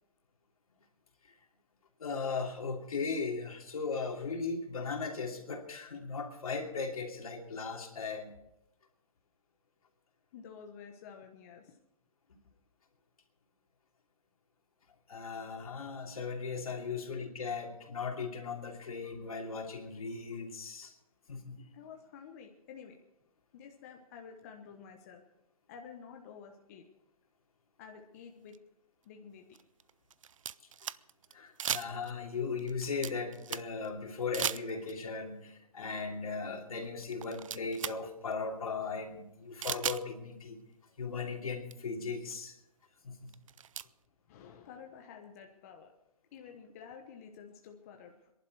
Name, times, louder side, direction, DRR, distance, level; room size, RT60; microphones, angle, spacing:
voice 1, 2.0-8.3 15.1-20.9 21.3-21.6 31.3-40.6 41.0-42.6 43.0-43.3, left 4 dB, 75° left, 2 dB, 2.9 m, -37 dB
voice 2, 10.3-11.8 21.7-23.0 23.5-25.2 25.7-26.9 27.8-28.6 29.0-29.6 44.3-45.9 46.3-48.3, left 7 dB, 25° left, 3 dB, 1.1 m, -50 dB
sound 1, 28.5-28.6 29.5-31.3 31.6-32.2 32.6-33.9 34.3-35.0 36.4-36.5 37.0-38.0 38.3-38.4 39.6-40.0 41.3-41.4 41.7-41.8 42.3-42.4 43.3-43.9, right 9 dB, 65° right, 0.5 m, -37 dB
23.5 x 11.0 x 4.7 m, 0.85 s
hypercardioid pair, 165°, 18 cm